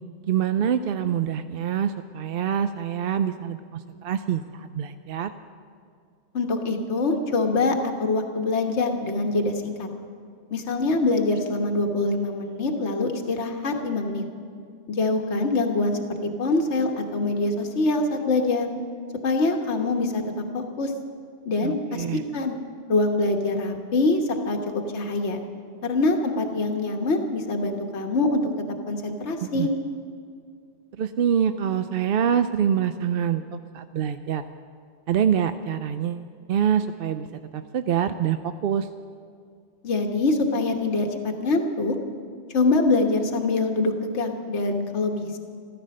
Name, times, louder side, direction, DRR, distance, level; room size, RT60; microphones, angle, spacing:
voice 1, 0.3-5.3 21.6-22.2 29.4-29.7 30.9-34.4 35.1-37.3 37.5-38.9, right 8 dB, 60° right, 10 dB, 0.7 m, -25 dB
voice 2, 6.3-9.9 10.5-14.3 14.9-18.7 19.2-20.9 21.5-22.5 22.9-24.2 24.4-24.6 24.9-25.4 25.8-28.5 28.9-29.7 39.8-41.1 41.4-42.0 42.5-45.4, left 2 dB, 75° left, 3 dB, 1.5 m, -24 dB
15.0 x 14.0 x 6.4 m, 2.2 s
omnidirectional pair, 1.2 m